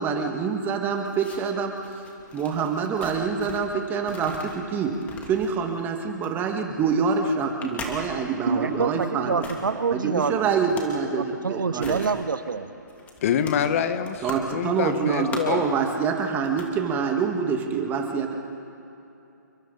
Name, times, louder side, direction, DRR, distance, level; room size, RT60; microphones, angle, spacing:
voice 1, 0.0-1.8 2.3-5.0 5.3-9.4 9.9-12.0 14.2-18.3, right 5 dB, 20° right, 3 dB, 2.0 m, -26 dB
sound 1, 0.6-3.7 4.0-8.4 9.2-9.6 10.5-11.0 11.3-12.2 12.4-12.5 12.9-14.5 14.8-15.7 16.3-16.7 17.0-17.2, left 3 dB, 15° left, 2.8 m, -41 dB
voice 2, 8.5-10.6 11.2-12.7 15.0-15.1, right 5 dB, 80° right, 12 dB, 1.1 m, -26 dB
voice 3, 13.2-15.7, left 8 dB, 45° left, 9 dB, 1.5 m, -26 dB
30.0 x 22.0 x 4.1 m, 2.9 s
hypercardioid pair, 140°, 11 cm